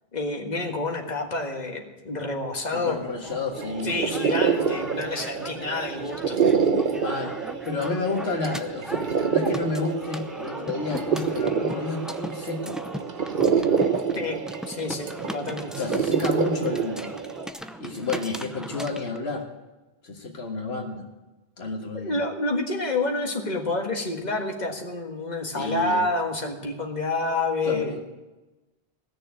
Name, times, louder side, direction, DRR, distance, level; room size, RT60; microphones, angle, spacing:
voice 1, 0.1-3.0 3.8-6.4 14.1-14.4 14.7-15.8 21.9-28.0, left 2 dB, 45° left, 1 dB, 1.8 m, -28 dB
voice 2, 2.7-4.0 6.9-7.4 7.6-12.8 15.8-17.1 17.8-19.5 20.0-21.0 21.6-22.2 25.5-26.0 27.7-28.0, left 3 dB, 85° left, 0 dB, 1.8 m, -30 dB
sound 1, 2.9-19.2, equal, ahead, 0.5 m, -39 dB
sound 2, 3.5-17.5, right 6 dB, 55° right, 1.0 m, -27 dB
17.5 x 6.8 x 8.9 m, 1.1 s
omnidirectional pair, 1.0 m